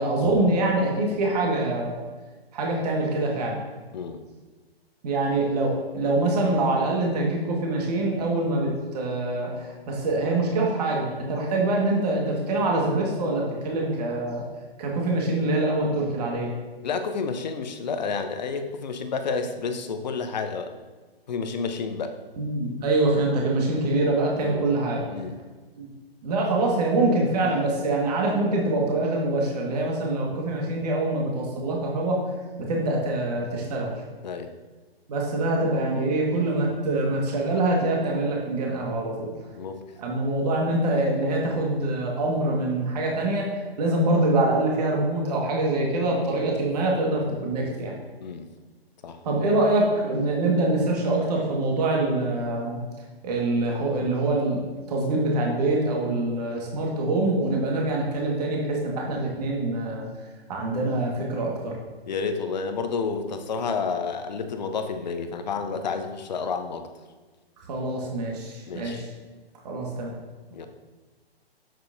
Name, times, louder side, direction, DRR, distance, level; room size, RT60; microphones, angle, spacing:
voice 1, 0.0-2.0 2.5-3.6 5.0-14.4 14.8-16.5 22.4-25.0 25.8-25.9 26.2-32.2 32.7-33.9 35.1-39.3 40.0-43.5 43.8-47.9 49.2-52.8 53.2-54.6 54.9-60.1 60.5-61.8 67.7-69.1 69.6-70.1, right 2 dB, 40° right, -1 dB, 1.7 m, -24 dB
voice 2, 16.8-20.7 21.3-22.2 24.4-24.7 25.1-25.4 34.2-34.5 39.5-39.8 48.2-48.5 49.0-49.2 62.1-66.9 68.7-69.1 70.5-70.7, left 5 dB, 45° left, 8 dB, 0.8 m, -30 dB
8.2 x 7.8 x 2.7 m, 1.3 s
figure-of-eight pair, 130°, 31 cm